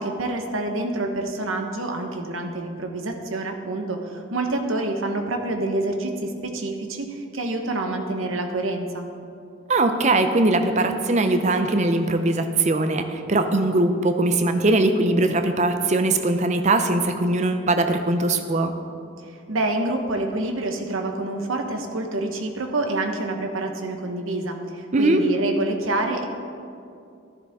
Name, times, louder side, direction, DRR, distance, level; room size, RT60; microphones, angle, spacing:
voice 1, 0.0-9.1 19.5-26.3, right 2 dB, 85° right, 4 dB, 1.0 m, -27 dB
voice 2, 9.7-18.7 24.9-25.2, right 2 dB, 35° right, 7 dB, 0.5 m, -21 dB
12.5 x 11.0 x 3.6 m, 2.5 s
head